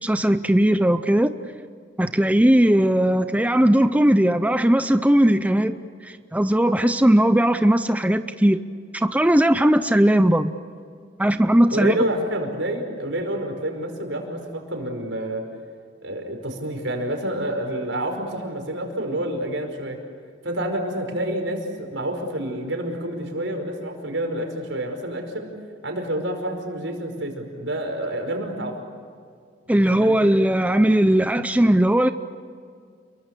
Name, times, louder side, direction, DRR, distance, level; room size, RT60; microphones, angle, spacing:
voice 1, 0.0-1.3 2.0-5.8 6.0-8.6 8.9-10.5 11.2-12.0 29.7-32.1, right 1 dB, 10° right, 10 dB, 0.6 m, -18 dB
voice 2, 11.7-15.4 16.0-20.0 20.4-25.5 25.8-28.8 29.6-30.2, right 1 dB, 85° right, 4 dB, 5.1 m, -28 dB
29.0 x 23.0 x 6.9 m, 2.1 s
head